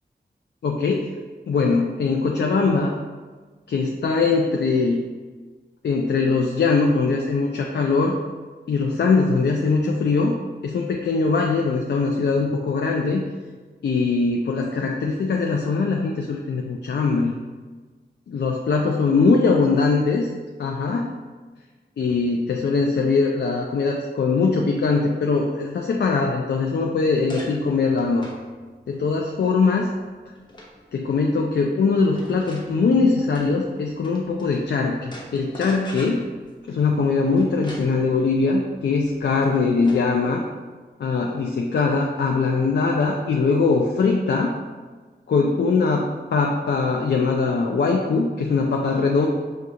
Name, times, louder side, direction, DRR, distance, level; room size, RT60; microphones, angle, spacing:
voice 1, 0.6-1.1 1.5-2.9 3.7-5.0 5.8-8.2 8.7-10.4 10.6-13.2 13.8-17.3 18.3-20.3 20.6-21.1 22.0-28.3 28.9-29.9 30.9-36.3 36.7-40.5 41.0-44.5 45.3-49.3, left 4 dB, 75° left, 1 dB, 0.4 m, -21 dB
sound 1, 26.7-34.7 35.0-40.3, left 1 dB, 25° left, 0.8 m, -43 dB
6.3 x 2.3 x 2.8 m, 1.4 s
wide cardioid pair, 80°, 18 cm